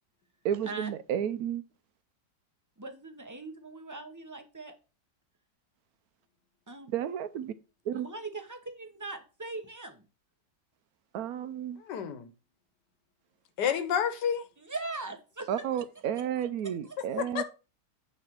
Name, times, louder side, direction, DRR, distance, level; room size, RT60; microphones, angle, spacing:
voice 1, 0.4-1.6 6.9-7.5 7.9-8.1 11.1-11.8 15.5-17.4, right 9 dB, 70° right, 0.9 m, -32 dB
voice 2, 2.8-4.7 6.7-6.9 7.9-10.0 14.6-15.6 17.1-17.2, right 3 dB, 20° right, 0.6 m, -40 dB
voice 3, 11.9-12.3 13.6-14.4 17.2-17.4, left 8 dB, 75° left, 1.5 m, -29 dB
9.1 x 3.3 x 6.0 m
omnidirectional pair, 1.8 m